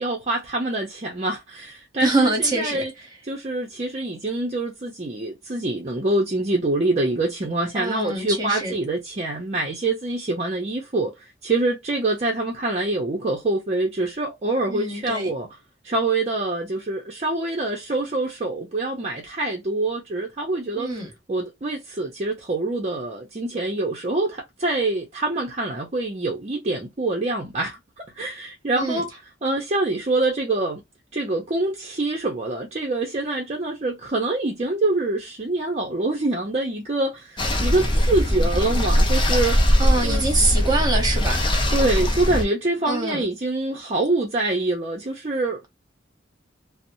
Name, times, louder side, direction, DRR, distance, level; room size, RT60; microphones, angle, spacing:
voice 1, 0.0-2.9 3.2-15.5 15.8-20.9 21.3-30.8 31.1-39.6 40.0-40.2 41.7-45.7, right 2 dB, 35° right, 0.6 m, -25 dB
voice 2, 2.0-2.8 7.7-8.7 14.7-15.3 20.8-21.1 28.8-29.0 39.8-41.4 42.8-43.2, right 2 dB, 20° right, 1.1 m, -24 dB
sound 1, 37.4-42.4, equal, 25° left, 0.6 m, -20 dB
2.8 x 2.0 x 2.5 m
head